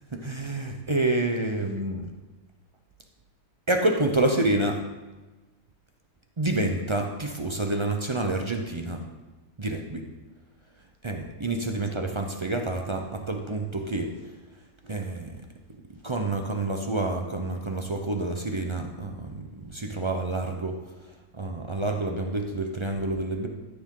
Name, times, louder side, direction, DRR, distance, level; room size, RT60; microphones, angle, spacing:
voice 1, 0.1-2.1 3.7-4.8 6.4-9.0 9.6-10.0 11.0-14.3 14.8-15.4 16.0-20.8 21.3-23.5, right 2 dB, 40° right, 3 dB, 0.4 m, -28 dB
13.0 x 7.0 x 3.7 m, 1.2 s
omnidirectional pair, 1.6 m